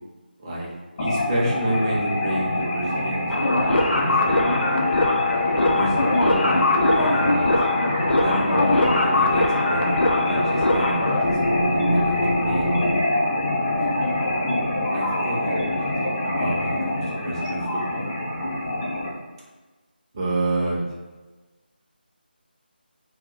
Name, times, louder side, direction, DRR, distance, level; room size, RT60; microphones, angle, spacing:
sound 1, 1.0-19.1, left 2 dB, 25° left, 0.4 m, -25 dB
voice 1, 1.0-4.5 5.5-7.5 8.2-12.2 12.4-12.8 13.7-14.4 14.9-18.0 20.1-20.8, right 1 dB, 25° right, -5 dB, 0.5 m, -29 dB
sound 2, 3.3-13.0, left 1 dB, 85° left, 0.4 m, -22 dB
2.2 x 2.0 x 3.7 m, 1.2 s
figure-of-eight pair, 160°, 6 cm